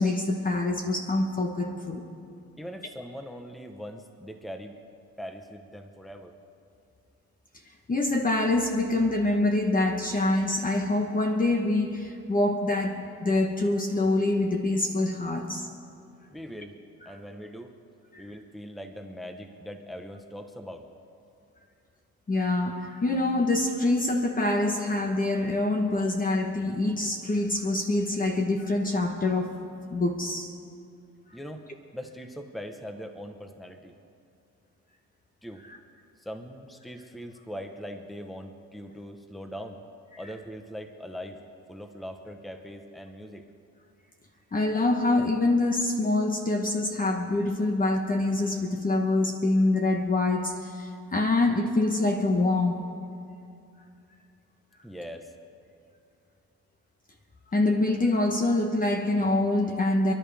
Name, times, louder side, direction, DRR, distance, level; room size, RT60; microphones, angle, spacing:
voice 1, 0.0-2.0 7.9-15.7 18.1-18.3 22.3-29.5 29.9-30.5 35.7-35.8 44.5-52.8 57.5-60.1, left 2 dB, 30° left, 3 dB, 1.2 m, -25 dB
voice 2, 2.6-4.7 5.2-6.4 16.3-16.7 17.0-17.7 18.2-20.9 31.3-31.7 31.9-33.9 35.4-35.6 36.2-39.8 40.2-41.4 41.7-43.4 54.8-55.3, equal, ahead, 5 dB, 1.0 m, -41 dB
29.0 x 11.0 x 3.5 m, 2.4 s
cardioid pair, 90°, 30 cm